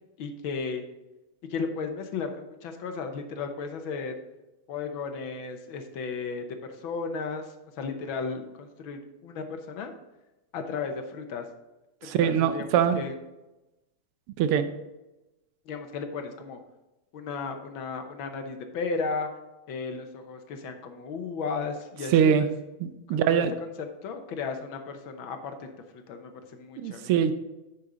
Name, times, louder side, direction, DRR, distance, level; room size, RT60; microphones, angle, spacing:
voice 1, 0.2-0.8 1.5-4.1 4.7-7.4 7.8-9.9 10.5-11.5 12.0-13.1 15.7-16.6 17.1-19.3 19.7-22.5 23.1-23.4 23.8-27.1, left 4 dB, 70° left, 6 dB, 1.6 m, -35 dB
voice 2, 12.0-13.0 14.4-14.7 22.1-22.5 22.8-23.5 26.8-27.3, right 8 dB, 85° right, 10 dB, 1.6 m, -23 dB
9.8 x 6.3 x 3.9 m, 1.0 s
omnidirectional pair, 2.4 m